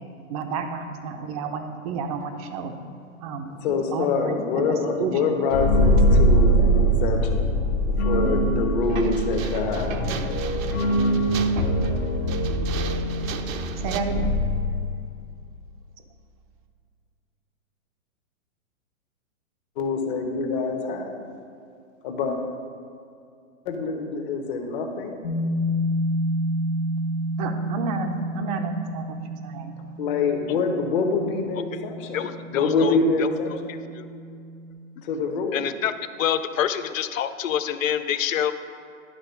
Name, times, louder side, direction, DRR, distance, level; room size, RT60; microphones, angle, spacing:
voice 1, 0.3-2.7 3.2-4.6 5.0-5.1 13.8-14.3 27.4-29.7, right 4 dB, 25° right, 5 dB, 0.6 m, -31 dB
voice 2, 3.6-7.6 8.0-10.0 19.8-21.1 22.0-22.4 23.6-25.3 30.0-33.7 35.0-35.6, left 4 dB, 40° left, 3 dB, 1.1 m, -26 dB
sound 1, 5.5-15.2, right 1 dB, 20° left, 0.5 m, -22 dB
sound 2, 8.8-14.0, right 7 dB, 70° right, 0.8 m, -35 dB
sound 3, 25.2-34.7, equal, 85° left, 1.9 m, -30 dB
voice 3, 32.1-33.3 33.9-34.0 35.5-35.9 36.2-38.5, left 9 dB, 70° left, 11 dB, 0.6 m, -26 dB
11.0 x 3.8 x 5.6 m, 2.4 s
hypercardioid pair, 140°, 42 cm